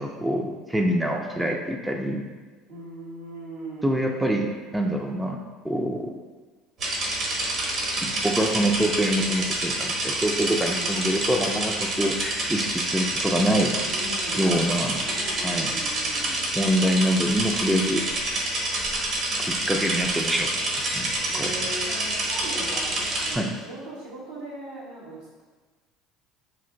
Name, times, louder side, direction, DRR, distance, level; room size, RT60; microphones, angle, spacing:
voice 1, 0.0-2.3 3.8-6.1 8.0-13.8 14.4-15.0 15.4-15.7 16.5-18.0 19.4-20.5 20.8-21.5 23.3-23.5, equal, 10° right, 2 dB, 0.4 m, -25 dB
voice 2, 2.7-4.4 10.7-11.2 13.8-16.4 21.2-25.4, right 1 dB, 80° right, -6 dB, 1.2 m, -39 dB
sound 1, 6.8-23.3, right 1 dB, 50° right, 1.0 m, -27 dB
3.2 x 2.5 x 3.8 m, 1.3 s
hypercardioid pair, 70°, 0 cm